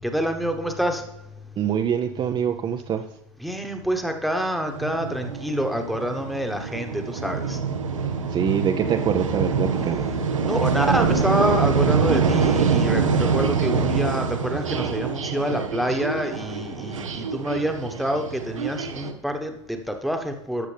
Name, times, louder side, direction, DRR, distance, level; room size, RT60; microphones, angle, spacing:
voice 1, 0.0-1.1 3.4-7.6 10.4-20.7, equal, ahead, 5 dB, 1.2 m, -27 dB
voice 2, 1.6-3.1 8.3-10.1, right 8 dB, 30° right, 5 dB, 0.6 m, -24 dB
sound 1, 4.7-19.1, right 5 dB, 90° right, 0.9 m, -25 dB
13.5 x 6.3 x 3.4 m, 0.91 s
hypercardioid pair, 90°, 16 cm